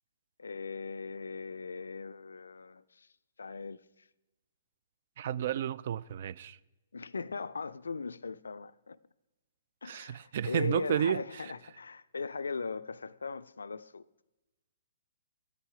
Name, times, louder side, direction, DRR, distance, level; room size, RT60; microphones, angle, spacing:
voice 1, 0.4-3.1 3.4-3.8 6.9-9.0 9.8-14.0, left 4 dB, 70° left, 0.4 m, -39 dB
voice 2, 5.2-6.6 9.9-11.2, right 9 dB, 50° right, 0.3 m, -31 dB
10.0 x 9.5 x 4.9 m
figure-of-eight pair, 120°, 0 cm